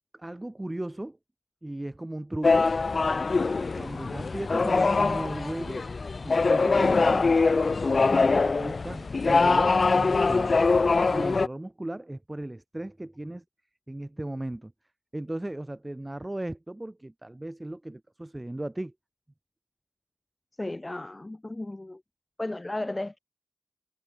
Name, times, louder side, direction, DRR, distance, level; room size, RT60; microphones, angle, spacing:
voice 1, 0.1-1.2 1.6-2.7 3.8-5.9 6.2-7.4 8.0-10.6 11.1-13.4 13.9-14.7 15.1-18.9, right 1 dB, 20° right, 2.2 m, -36 dB
sound 1, 2.4-11.5, left 4 dB, 65° left, 0.4 m, -23 dB
voice 2, 20.6-22.0 22.4-23.2, left 2 dB, 30° left, 0.9 m, -34 dB
wide cardioid pair, 75°, 0 cm